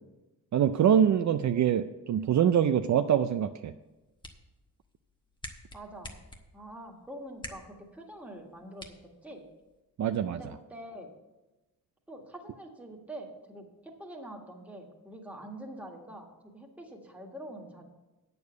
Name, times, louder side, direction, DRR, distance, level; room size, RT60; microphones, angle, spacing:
voice 1, 0.5-3.7 10.0-10.4, right 9 dB, 60° right, 9 dB, 0.5 m, -24 dB
sound 1, 3.8-9.8, left 1 dB, 15° left, 1.0 m, -50 dB
voice 2, 5.7-6.1 6.5-8.9 9.2-9.4 10.3-11.1 12.1-16.3 16.5-17.8, right 1 dB, 5° right, 0 dB, 1.7 m, -45 dB
8.5 x 6.9 x 8.1 m, 1.1 s
wide cardioid pair, 140°, 33 cm